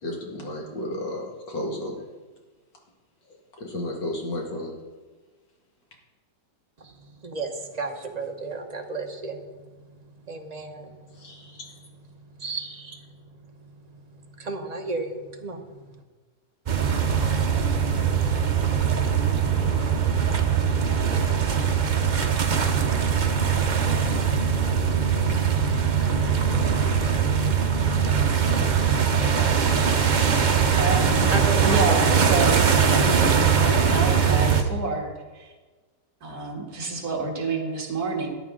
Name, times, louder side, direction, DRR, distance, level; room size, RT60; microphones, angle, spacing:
voice 1, 0.0-2.0 3.6-4.7 11.2-11.7, left 1 dB, 70° left, 0 dB, 2.6 m, -32 dB
voice 2, 7.2-9.4 10.3-11.0 12.4-13.0 14.4-15.8 31.3-32.5, right 3 dB, 35° right, 3 dB, 0.7 m, -32 dB
sound 1, 16.7-34.6, right 6 dB, 75° right, 0.4 m, -21 dB
voice 3, 30.8-31.3 31.6-33.2 33.6-35.5 36.2-38.3, right 3 dB, 55° right, 0 dB, 2.2 m, -28 dB
13.0 x 9.9 x 3.8 m, 1.3 s
omnidirectional pair, 2.0 m